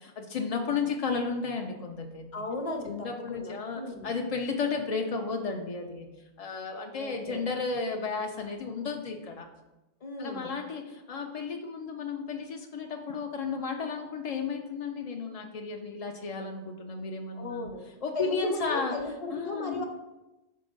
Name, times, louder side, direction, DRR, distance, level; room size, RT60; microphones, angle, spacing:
voice 1, 0.0-2.3 2.9-9.5 10.2-17.7 18.0-18.9 19.3-19.8, left 4 dB, 60° left, 2 dB, 0.4 m, -33 dB
voice 2, 2.3-4.1 6.9-7.5 10.0-10.5 17.3-17.8 18.1-19.8, left 2 dB, 35° left, 4 dB, 0.7 m, -36 dB
5.1 x 3.7 x 5.2 m, 1.0 s
omnidirectional pair, 1.2 m